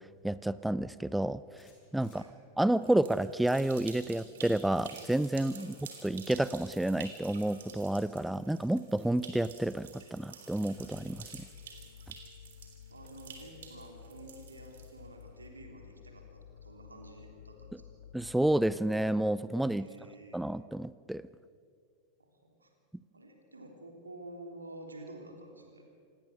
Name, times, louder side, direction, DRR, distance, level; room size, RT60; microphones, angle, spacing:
voice 1, 0.0-1.6 1.9-2.2 2.6-5.7 6.0-11.2 18.1-19.9 20.3-21.2, right 1 dB, 5° right, 17 dB, 0.5 m, -30 dB
sound 1, 1.6-2.2 3.4-3.8 4.8-5.3, left 6 dB, 35° left, 5.8 m, -61 dB
voice 2, 2.0-2.3 5.6-5.7 12.9-18.0 19.8-20.4 22.2-22.7 23.1-25.8, right 2 dB, 80° right, 2 dB, 3.5 m, -50 dB
sound 2, 2.8-15.2, right 6 dB, 60° right, 3.4 m, -50 dB
sound 3, 10.8-19.8, left 9 dB, 65° left, 1.5 m, -53 dB
27.0 x 19.0 x 6.4 m, 2.1 s
figure-of-eight pair, 90°, 0 cm